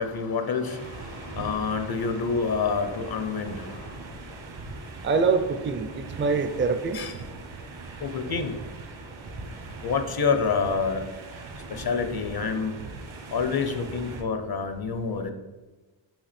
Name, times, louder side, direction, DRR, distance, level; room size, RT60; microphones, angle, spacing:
voice 1, 0.0-4.2 6.9-7.1 8.0-8.6 9.4-9.5 9.8-11.1 11.6-12.8 13.3-15.3, left 5 dB, 50° left, 0.6 m, -28 dB
sound 1, 0.6-14.2, right 3 dB, 70° right, 1.2 m, -41 dB
voice 2, 5.0-7.0, right 4 dB, 25° right, 0.4 m, -25 dB
5.8 x 5.5 x 4.2 m
wide cardioid pair, 175°, 48 cm